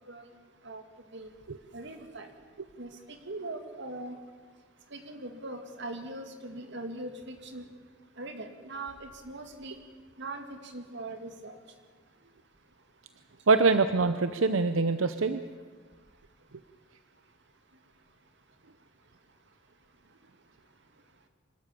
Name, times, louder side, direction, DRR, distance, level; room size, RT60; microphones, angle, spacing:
voice 1, 1.7-2.3 2.8-4.2 4.9-7.6 8.2-9.8 10.2-11.6, right 2 dB, 65° right, 6 dB, 2.3 m, -41 dB
voice 2, 13.5-15.4, right 4 dB, 90° right, 10 dB, 0.7 m, -24 dB
25.5 x 13.0 x 8.5 m, 1.5 s
head